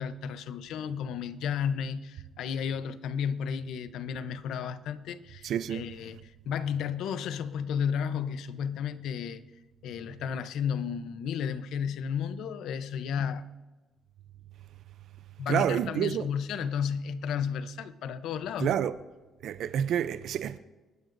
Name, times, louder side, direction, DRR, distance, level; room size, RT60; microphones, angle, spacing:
voice 1, 0.0-9.4 9.8-13.4 15.4-18.8, left 7 dB, 75° left, 0.7 m, -33 dB
voice 2, 5.4-5.8 15.5-16.3 18.6-18.9 19.4-20.6, right 9 dB, 65° right, 0.5 m, -28 dB
28.5 x 12.0 x 2.6 m
cardioid pair, 150°, 0 cm